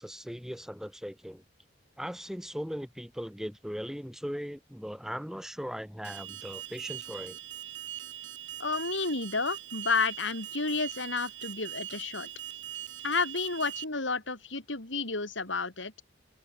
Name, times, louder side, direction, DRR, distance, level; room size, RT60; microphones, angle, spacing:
voice 1, 0.0-1.4 2.0-7.4, equal, ahead, 2.7 m, -39 dB
Alarm, 6.0-13.8, right 11 dB, 75° right, 3.9 m, -41 dB
voice 2, 8.6-12.3 13.0-15.9, left 4 dB, 80° left, 4.1 m, -31 dB
head